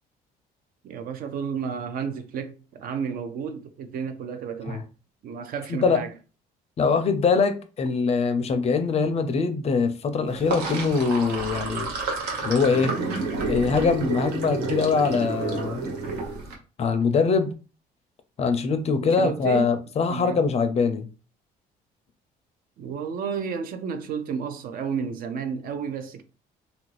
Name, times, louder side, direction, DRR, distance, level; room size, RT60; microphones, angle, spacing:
voice 1, 0.8-4.8 5.2-6.1 19.0-19.7 20.1-20.4 22.8-26.2, right 6 dB, 60° right, 0.5 m, -32 dB
voice 2, 5.7-6.0 6.8-11.9 12.4-13.0 13.5-15.9 16.8-17.5 18.4-21.1, left 5 dB, 40° left, 0.4 m, -23 dB
Sink (filling or washing), 10.3-16.5, right 3 dB, 85° right, 0.9 m, -30 dB
2.8 x 2.5 x 3.2 m
cardioid pair, 110°, 17 cm